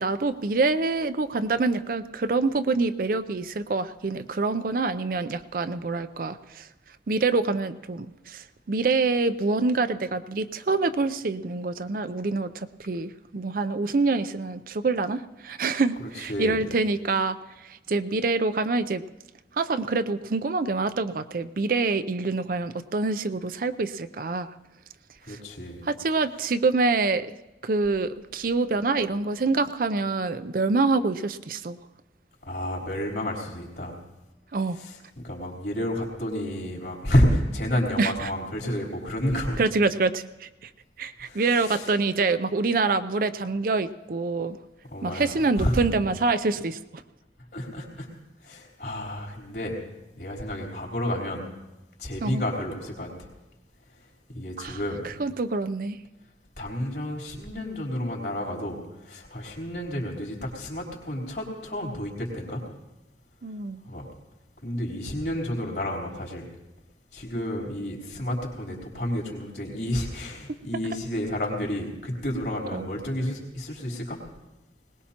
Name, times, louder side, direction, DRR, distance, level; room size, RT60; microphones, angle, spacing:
voice 1, 0.0-6.7 7.1-19.0 19.6-24.5 25.3-25.4 25.8-27.3 27.6-31.8 34.5-34.8 38.0-38.3 39.6-40.7 41.0-44.6 45.0-46.8 52.2-52.4 54.6-54.8 55.0-56.0 63.4-63.8 72.7-72.8, right 3 dB, 50° right, 12 dB, 0.5 m, -26 dB
voice 2, 16.0-16.6 25.2-25.8 32.4-34.0 34.7-39.6 41.2-41.9 44.9-45.8 47.5-48.1 48.4-49.8 50.2-51.4 52.0-53.3 54.3-55.0 56.6-62.6 63.8-64.1 64.6-66.5 67.1-74.2, equal, 60° left, -2 dB, 3.6 m, -30 dB
21.0 x 19.0 x 2.9 m, 1.0 s
head